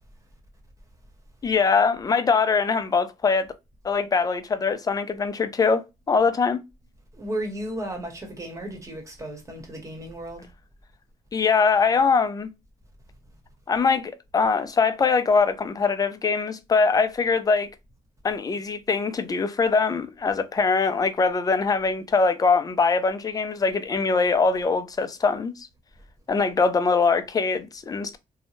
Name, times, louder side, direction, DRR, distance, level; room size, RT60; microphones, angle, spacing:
voice 1, 1.4-3.5 3.8-6.6 11.3-12.5 13.7-17.7 18.2-25.5 26.3-28.2, left 4 dB, 25° left, 0.4 m, -22 dB
voice 2, 7.1-10.5, right 1 dB, 20° right, 1.0 m, -34 dB
2.7 x 2.1 x 3.0 m
cardioid pair, 100°, 14 cm